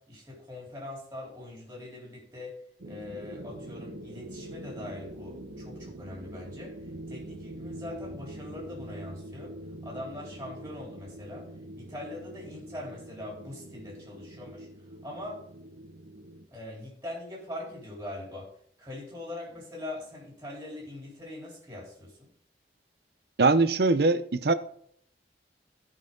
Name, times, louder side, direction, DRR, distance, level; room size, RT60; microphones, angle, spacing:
voice 1, 0.0-2.5 2.9-6.7 7.1-9.5 9.8-11.4 11.7-14.7 15.0-15.4 16.5-18.5 18.8-22.1, left 1 dB, 15° right, 3.7 m, -42 dB
sound 1, 2.8-16.5, right 1 dB, 90° right, 1.3 m, -44 dB
voice 2, 23.4-24.5, right 3 dB, 60° right, 0.6 m, -22 dB
15.0 x 5.6 x 3.9 m
head